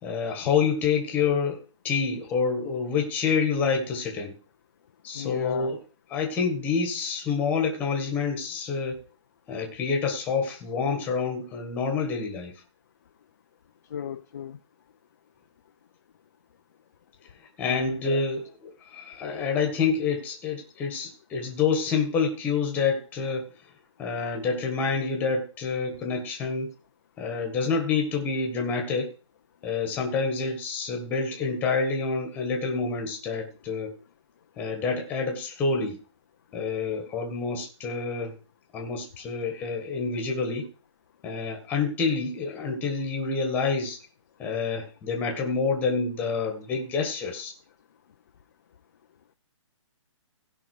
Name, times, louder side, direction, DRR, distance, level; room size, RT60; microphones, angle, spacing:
voice 1, 0.0-4.3 5.0-5.8 6.1-9.0 9.5-12.6 17.6-23.5 24.0-26.7 27.2-29.1 29.6-33.9 34.6-36.0 36.5-38.3 38.7-40.7 41.2-44.0 44.4-47.5, left 5 dB, 10° left, 2 dB, 1.6 m, -27 dB
voice 2, 5.2-5.8 13.9-14.6 17.6-18.2, left 9 dB, 35° left, 6 dB, 0.5 m, -35 dB
16.0 x 5.6 x 4.7 m, 0.36 s
hypercardioid pair, 170°, 16 cm